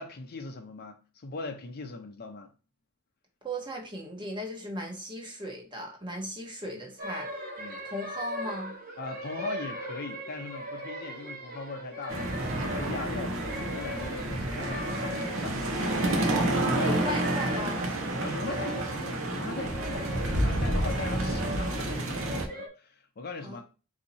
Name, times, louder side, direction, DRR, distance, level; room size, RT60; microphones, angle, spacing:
voice 1, 0.0-2.5 7.6-7.8 9.0-17.0 18.2-23.6, left 3 dB, 45° left, 0.6 m, -40 dB
voice 2, 3.4-7.5 7.8-8.7 16.8-17.9 23.4-23.6, equal, 20° right, 1.1 m, -37 dB
sound 1, 7.0-22.7, equal, 45° right, 0.9 m, -40 dB
sound 2, 12.1-22.5, right 1 dB, 65° right, 0.9 m, -29 dB
4.1 x 2.7 x 4.0 m
head